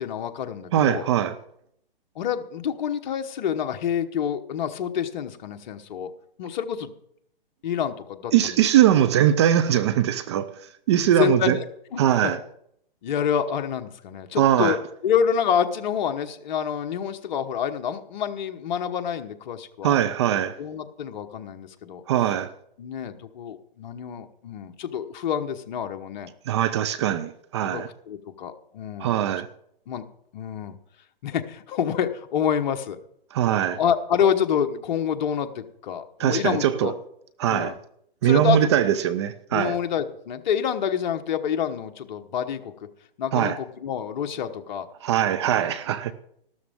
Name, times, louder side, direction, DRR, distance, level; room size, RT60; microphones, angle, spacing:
voice 1, 0.0-1.1 2.1-6.1 6.4-6.9 7.6-8.6 11.0-11.6 11.9-12.3 13.0-14.8 15.0-20.0 20.6-22.0 22.8-26.3 27.6-29.1 29.9-30.0 30.3-30.8 31.2-33.0 33.7-36.9 37.5-37.8 38.2-38.7 39.5-42.7 43.2-44.9, left 8 dB, 50° left, 1.2 m, -27 dB
voice 2, 0.7-1.4 8.3-10.5 10.9-11.6 12.0-12.4 14.4-14.8 19.8-20.6 22.1-22.5 26.5-27.9 29.0-29.5 33.3-33.8 36.2-36.9 37.4-37.7 38.2-39.8 43.3-43.6 45.0-46.1, right 11 dB, 30° right, 0.5 m, -21 dB
13.5 x 12.5 x 3.6 m
hypercardioid pair, 140°, 29 cm